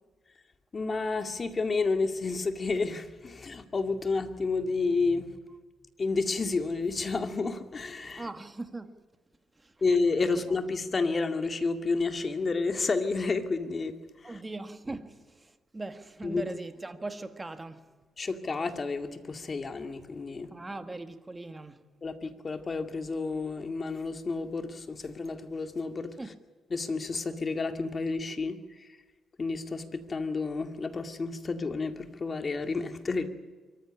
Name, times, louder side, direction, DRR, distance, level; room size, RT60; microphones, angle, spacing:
voice 1, 0.7-5.4 6.0-8.3 9.8-14.4 16.2-16.4 18.2-20.5 22.0-26.1 26.7-28.9 29.4-33.3, left 4 dB, 35° left, 2.2 m, -30 dB
voice 2, 8.2-9.0 9.6-9.7 10.5-10.6 14.2-17.8 20.5-21.8 26.2-26.4, right 2 dB, 20° right, 1.7 m, -40 dB
24.5 x 14.5 x 9.9 m
cardioid pair, 90°, 0 cm